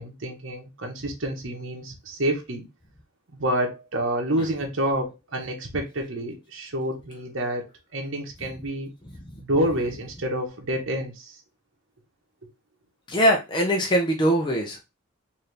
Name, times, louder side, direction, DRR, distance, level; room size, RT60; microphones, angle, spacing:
voice 1, 0.0-2.6 3.3-8.9 9.4-11.4, right 1 dB, 65° right, 1.0 m, -28 dB
voice 2, 13.1-14.8, equal, 20° left, 0.6 m, -22 dB
4.2 x 2.7 x 3.3 m
head